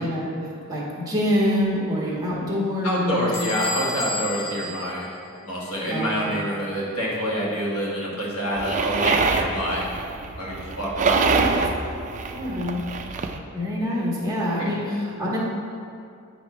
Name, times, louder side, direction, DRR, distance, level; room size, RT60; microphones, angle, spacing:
voice 1, 0.0-3.3 5.9-6.3 11.1-11.5 12.3-12.9 13.5-15.4, left 1 dB, 20° right, -6 dB, 1.5 m, -26 dB
voice 2, 2.8-5.1 5.4-9.8 10.4-11.3 14.6-14.7, equal, 80° left, -5 dB, 1.7 m, -27 dB
Bell / Door, 3.3-5.8, left 1 dB, 15° left, 0.7 m, -33 dB
sound 1, 8.6-13.4, right 4 dB, 35° right, 0.4 m, -25 dB
8.8 x 3.1 x 5.5 m, 2.4 s
head